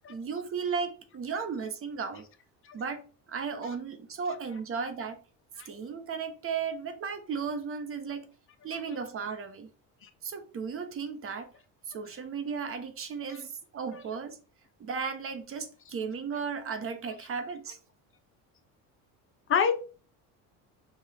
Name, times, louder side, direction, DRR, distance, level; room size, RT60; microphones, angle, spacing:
voice 1, 0.1-2.3 2.7-5.2 5.6-8.3 8.6-9.7 10.2-11.5 11.9-14.4 14.8-17.8, right 5 dB, 35° right, 0.9 m, -35 dB
voice 2, 19.5-19.8, left 6 dB, 35° left, 0.6 m, -27 dB
5.0 x 2.4 x 4.2 m
supercardioid pair, 110°, 36 cm